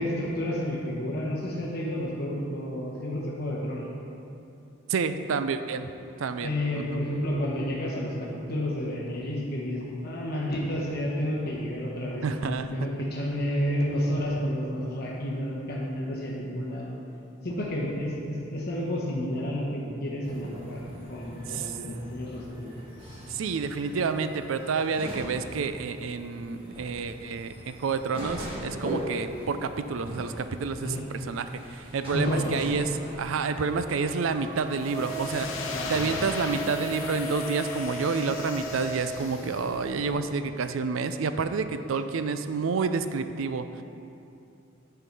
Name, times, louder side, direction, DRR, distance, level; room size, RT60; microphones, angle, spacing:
voice 1, 0.0-3.9 6.4-16.9 17.4-20.8 21.1-22.7 30.8-31.0 32.1-32.5 35.6-36.2, left 1 dB, 50° left, -4 dB, 1.1 m, -31 dB
voice 2, 4.9-5.9 6.2-7.0 12.2-12.7 21.5-21.8 23.3-32.9 33.2-43.8, right 4 dB, 85° right, 10 dB, 0.4 m, -29 dB
sound 1, 20.2-40.1, equal, 25° right, 1.6 m, -39 dB
sound 2, 32.0-39.4, right 1 dB, 45° right, 1.0 m, -48 dB
sound 3, 34.8-39.7, left 4 dB, 80° left, 0.8 m, -39 dB
9.9 x 4.7 x 5.3 m, 2.7 s
head